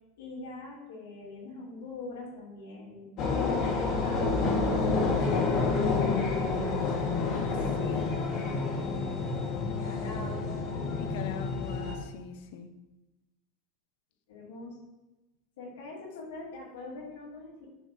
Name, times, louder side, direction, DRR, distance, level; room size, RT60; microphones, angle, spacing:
voice 1, 0.2-7.5 8.3-11.0 11.8-12.1 14.3-14.8 15.6-17.7, left 2 dB, 90° left, 3.4 m, -44 dB
sound 1, 3.2-12.0, left 4 dB, 50° left, 2.1 m, -29 dB
voice 2, 7.3-8.2 11.0-12.7, left 7 dB, 70° left, 0.9 m, -41 dB
9.3 x 5.2 x 5.1 m
supercardioid pair, 115°, 0 cm